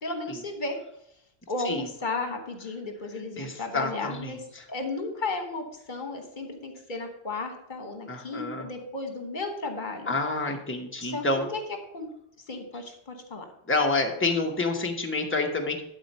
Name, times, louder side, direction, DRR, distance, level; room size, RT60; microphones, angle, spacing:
voice 1, 0.0-0.8 1.5-4.4 4.7-10.1 11.0-11.2 11.5-11.6 11.9-12.1 12.5-13.4, left 3 dB, 50° left, 5 dB, 1.4 m, -34 dB
voice 2, 3.4-4.6 8.1-8.7 10.1-11.5 13.7-15.8, left 3 dB, 10° left, 2 dB, 1.0 m, -28 dB
11.0 x 4.4 x 5.5 m, 0.77 s
omnidirectional pair, 1.0 m